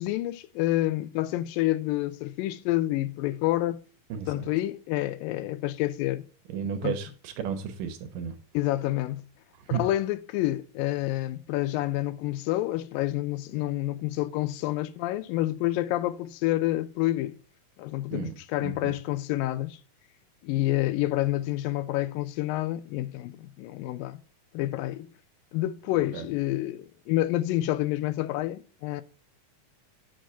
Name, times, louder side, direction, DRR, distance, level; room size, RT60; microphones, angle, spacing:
voice 1, 0.0-3.8 4.3-6.2 6.8-6.9 8.5-9.2 9.7-17.4 17.8-19.8 20.4-24.2 24.5-25.1 25.5-29.0, left 15 dB, 85° left, 2.3 m, -28 dB
voice 2, 4.1-4.5 6.5-8.3 9.7-9.8 18.1-18.4 18.6-18.9 26.1-26.3, right 7 dB, 75° right, 2.6 m, -33 dB
6.4 x 6.3 x 5.4 m
omnidirectional pair, 4.0 m